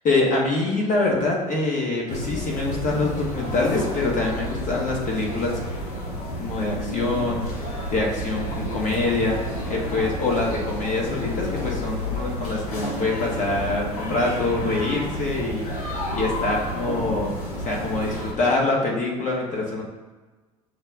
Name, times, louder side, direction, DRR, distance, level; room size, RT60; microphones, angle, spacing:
voice 1, 0.0-5.6 6.4-7.4 7.9-9.4 9.7-15.6 16.1-19.8, left 2 dB, 40° left, -2 dB, 1.2 m, -25 dB
sound 1, 2.1-18.3, left 1 dB, 80° left, 0.8 m, -30 dB
6.6 x 2.2 x 3.5 m, 1.3 s
hypercardioid pair, 65°, 19 cm